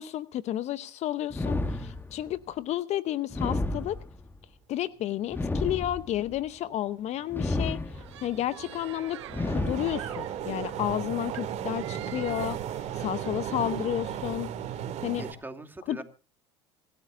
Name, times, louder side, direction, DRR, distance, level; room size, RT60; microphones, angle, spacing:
voice 1, 0.0-4.0 4.7-7.8 8.2-12.6 12.9-14.5 15.0-15.2 15.9-16.0, left 13 dB, 50° left, 16 dB, 0.8 m, -31 dB
sound 1, 1.3-2.4 3.3-4.4 5.3-6.4 7.3-8.3 9.3-10.3, left 2 dB, 15° left, 1.3 m, -31 dB
sound 2, 6.7-6.8 7.4-15.3, right 9 dB, 50° right, 2.6 m, -36 dB
sound 3, 7.9-14.5, right 13 dB, 85° right, 1.3 m, -48 dB
voice 2, 15.2-16.0, right 2 dB, 15° right, 6 dB, 2.7 m, -44 dB
26.5 x 13.0 x 2.6 m, 0.32 s
hypercardioid pair, 75°, 14 cm